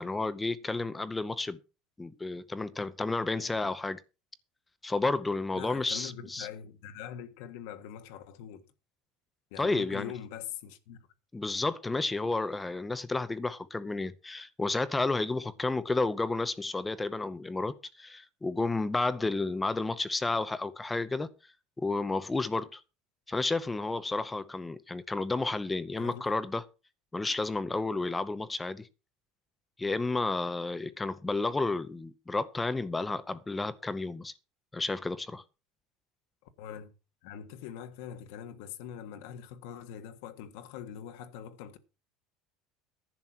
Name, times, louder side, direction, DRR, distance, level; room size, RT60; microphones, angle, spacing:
voice 1, 0.0-1.6 2.0-4.0 4.8-6.5 9.6-10.1 11.3-21.3 21.8-22.8 23.3-26.6 27.1-28.9 29.8-34.3 34.7-35.4, left 3 dB, 10° left, 0.6 m, -31 dB
voice 2, 5.5-8.6 9.5-11.0 11.9-12.0 26.0-26.2 36.6-36.9 37.2-41.8, left 9 dB, 75° left, 1.4 m, -43 dB
11.0 x 6.1 x 7.4 m
cardioid pair, 145°, 0 cm